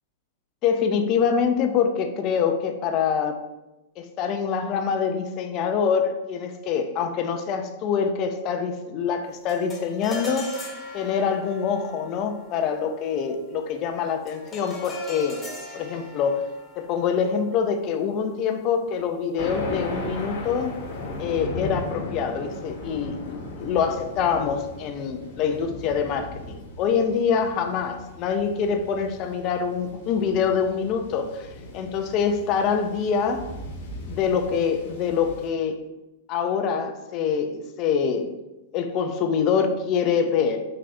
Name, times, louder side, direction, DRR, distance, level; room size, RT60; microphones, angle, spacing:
voice 1, 0.6-3.4 4.0-10.5 10.9-15.4 15.7-16.4 16.8-20.8 21.2-33.5 34.1-35.8 36.3-38.4 38.7-40.6, left 6 dB, 40° left, 6 dB, 0.4 m, -25 dB
sound 1, 9.5-19.0, left 2 dB, 15° left, 0.8 m, -41 dB
Thunder, 19.4-35.5, left 2 dB, 60° left, 0.9 m, -37 dB
3.7 x 2.5 x 3.3 m, 1.0 s
hypercardioid pair, 115°, 0 cm